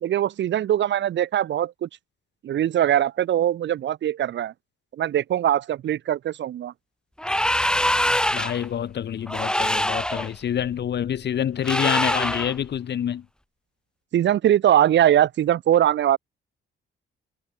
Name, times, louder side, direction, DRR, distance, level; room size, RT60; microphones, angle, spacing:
voice 1, 0.0-1.9 2.4-4.5 5.0-6.7 14.1-16.2, right 11 dB, 65° right, 1.4 m, -21 dB
sound 1, 7.2-8.7 9.3-10.3 11.6-12.5, left 1 dB, 5° left, 2.7 m, -23 dB
voice 2, 8.3-13.2, left 9 dB, 60° left, 2.7 m, -27 dB
cardioid pair, 90°, 20 cm